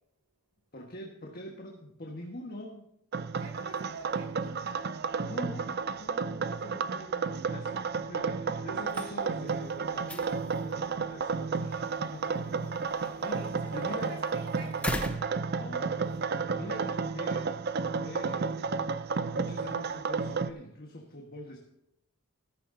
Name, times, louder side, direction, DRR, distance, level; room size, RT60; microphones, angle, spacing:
voice 1, 0.7-2.9 5.2-14.1 15.5-16.1 16.4-21.6, left 1 dB, 40° left, 0 dB, 1.5 m, -44 dB
sound 1, 3.1-20.5, right 5 dB, 45° right, 0.5 m, -32 dB
voice 2, 3.4-4.9 13.0-14.9, right 2 dB, 80° right, 1 dB, 4.4 m, -47 dB
sound 2, 8.7-16.2, left 1 dB, 5° left, 0.8 m, -43 dB
14.5 x 14.0 x 2.7 m, 0.81 s
head